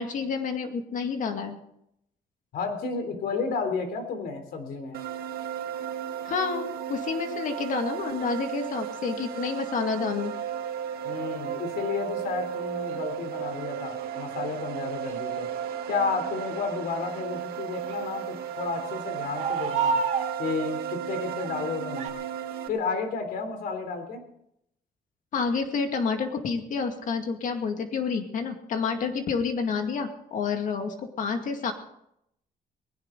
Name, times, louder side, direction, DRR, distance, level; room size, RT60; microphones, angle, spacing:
voice 1, 0.0-1.6 6.2-10.3 25.3-31.7, left 5 dB, 60° left, 5 dB, 2.1 m, -29 dB
voice 2, 2.5-5.0 11.0-15.5 15.9-20.0 20.4-22.2 22.7-24.2, left 4 dB, 85° left, 7 dB, 3.5 m, -32 dB
sound 1, 4.9-22.7, right 9 dB, 90° right, 1.9 m, -34 dB
sound 2, 9.5-9.6 12.9-13.0 15.1-15.2 17.7-18.0 19.3-20.4 21.4-21.6 22.0-22.1, right 5 dB, 45° right, 1.7 m, -28 dB
19.5 x 17.0 x 3.9 m, 0.75 s
cardioid pair, 155°, 15 cm